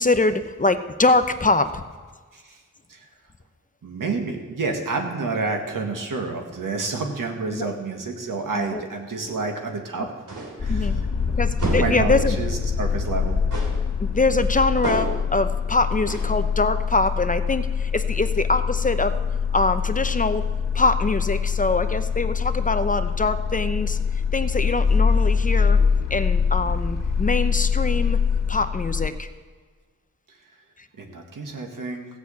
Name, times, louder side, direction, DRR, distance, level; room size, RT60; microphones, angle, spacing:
voice 1, 0.0-1.8 7.5-7.7 8.5-8.8 10.7-10.9 11.4-12.4 14.0-19.1 19.5-20.5 20.7-24.0 24.3-25.8 26.1-28.2 28.5-29.3, left 3 dB, 25° left, 10 dB, 0.7 m, -23 dB
voice 2, 3.8-10.1 10.6-11.0 11.3-11.4 11.7-13.4 30.3-30.4 31.0-32.1, right 3 dB, 90° right, 3 dB, 1.8 m, -29 dB
sound 1, 10.3-10.7 11.6-12.1 13.5-13.9 14.8-15.3 16.1-16.4, right 3 dB, 70° right, 3.2 m, -29 dB
sound 2, 10.6-29.1, left 6 dB, 70° left, 1.9 m, -24 dB
15.5 x 6.3 x 8.3 m, 1.5 s
wide cardioid pair, 90°, 32 cm